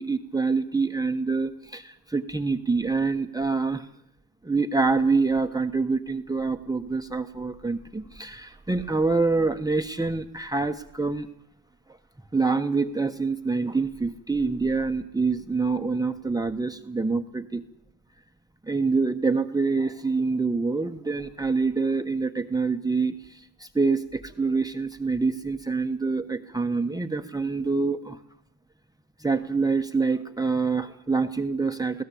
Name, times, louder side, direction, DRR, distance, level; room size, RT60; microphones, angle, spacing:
voice 1, 0.0-3.9 4.4-11.3 12.3-17.6 18.6-28.2 29.2-32.0, right 4 dB, 10° right, 6 dB, 1.2 m, -26 dB
24.5 x 17.0 x 8.5 m, 0.77 s
cardioid pair, 90°, 37 cm